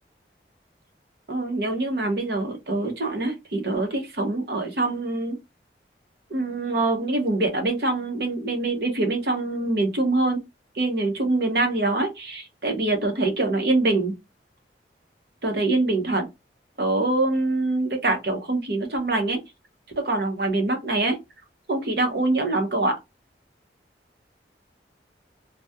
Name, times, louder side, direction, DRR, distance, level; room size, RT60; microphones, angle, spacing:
voice 1, 1.3-5.4 6.3-10.4 10.8-14.1 15.4-16.3 16.8-19.4 20.0-21.2 21.7-23.0, right 2 dB, 60° right, 0.9 m, -24 dB
2.8 x 2.3 x 3.4 m
head